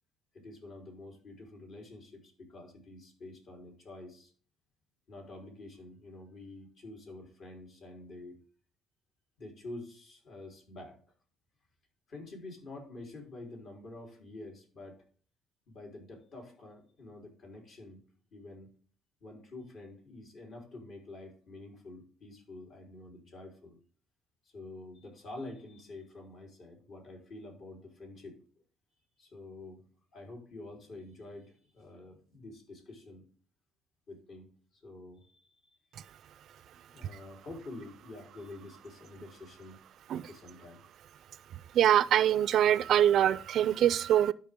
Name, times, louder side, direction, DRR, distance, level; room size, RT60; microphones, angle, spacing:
voice 1, 0.3-4.3 5.1-8.4 9.4-11.0 12.1-15.0 15.7-18.0 18.3-18.7 19.2-23.8 24.5-28.4 29.2-29.8 30.1-33.2 34.1-35.5 36.0-36.1 36.9-39.8 40.1-40.8, left 2 dB, 55° left, 4.0 m, -48 dB
voice 2, 41.7-44.3, right 10 dB, 60° right, 0.4 m, -24 dB
12.5 x 5.4 x 3.6 m
cardioid pair, 120°, 0 cm